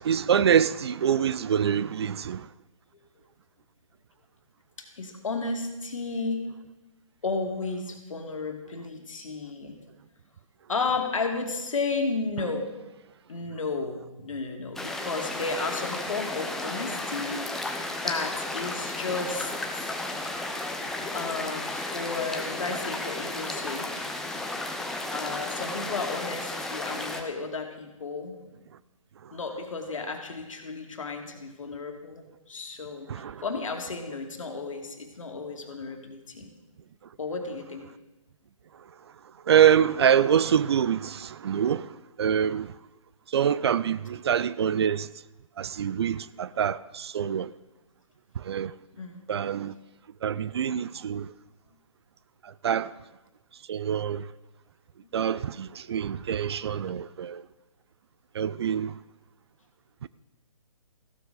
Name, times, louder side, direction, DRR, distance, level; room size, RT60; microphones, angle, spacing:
voice 1, 0.0-2.5 33.1-33.4 39.5-41.9 42.2-42.7 43.3-45.1 45.6-47.5 48.4-48.7 49.3-49.7 50.2-51.3 52.6-52.9 53.7-54.3 55.1-57.4 58.3-58.9 60.0-60.1, right 8 dB, 50° right, 0.4 m, -25 dB
voice 2, 4.8-6.4 7.2-9.8 10.7-12.7 13.3-19.9 21.1-24.1 25.1-28.4 29.3-36.5 37.2-37.9 49.0-49.2 55.0-55.1, left 4 dB, 70° left, 2.1 m, -33 dB
sound 1, 14.8-27.2, left 2 dB, ahead, 0.6 m, -33 dB
15.0 x 12.0 x 3.9 m
figure-of-eight pair, 140°, 18 cm